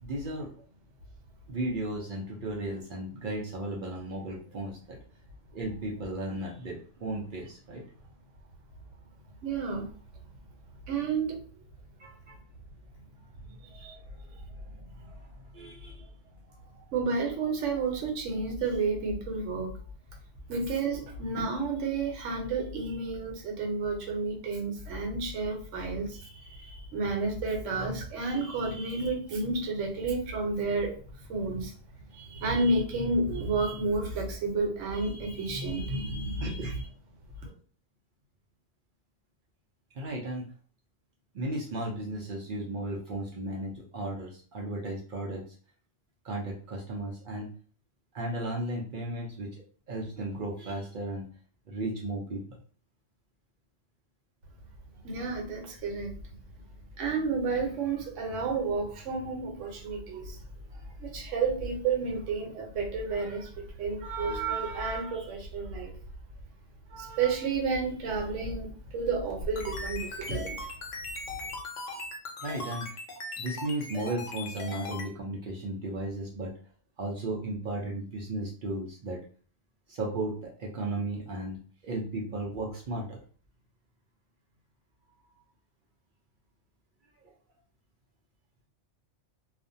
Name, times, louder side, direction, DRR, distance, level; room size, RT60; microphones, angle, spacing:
voice 1, 0.0-0.5 1.5-5.0 5.5-7.8 12.0-12.4 13.2-13.6 14.7-16.1 36.4-36.8 39.9-40.5 41.3-45.4 46.2-47.5 48.1-51.3 51.7-52.6 72.4-72.9 73.4-76.5 77.0-79.2 79.9-81.6 81.8-83.2 85.2-85.4 87.2-87.3, right 1 dB, 60° right, -1 dB, 0.5 m, -35 dB
voice 2, 9.4-9.9 10.9-11.6 13.6-14.0 16.7-19.7 20.5-30.9 31.3-31.7 32.1-36.8 37.4-37.5 55.0-56.3 57.0-60.4 60.7-66.0 66.9-70.6, right 3 dB, 75° right, 1 dB, 1.0 m, -31 dB
sound 1, 69.3-75.1, left 2 dB, 80° left, 1.0 m, -39 dB
2.4 x 2.1 x 2.6 m, 0.42 s
omnidirectional pair, 1.3 m